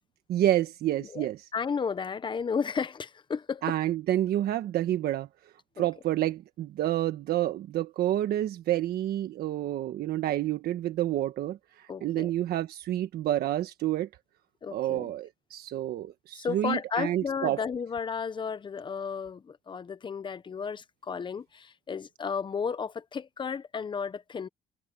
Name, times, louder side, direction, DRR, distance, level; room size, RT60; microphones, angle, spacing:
voice 1, 0.3-1.5 3.6-5.3 5.8-14.1 14.7-17.6, right 13 dB, 65° right, 1.3 m, -29 dB
voice 2, 1.0-3.6 5.8-5.9 11.9-12.3 14.6-15.1 16.3-24.5, left 6 dB, 30° left, 0.9 m, -33 dB
cardioid pair, 110°, 17 cm